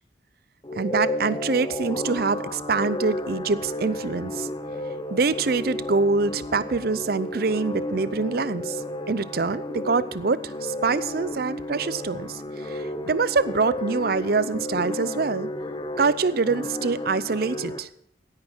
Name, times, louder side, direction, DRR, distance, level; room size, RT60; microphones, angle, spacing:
sound 1, 0.6-17.8, left 1 dB, 25° left, 0.8 m, -32 dB
voice 1, 0.8-4.5 5.1-15.5 16.0-17.9, right 4 dB, 55° right, 16 dB, 0.6 m, -25 dB
16.5 x 9.6 x 4.5 m, 0.65 s
head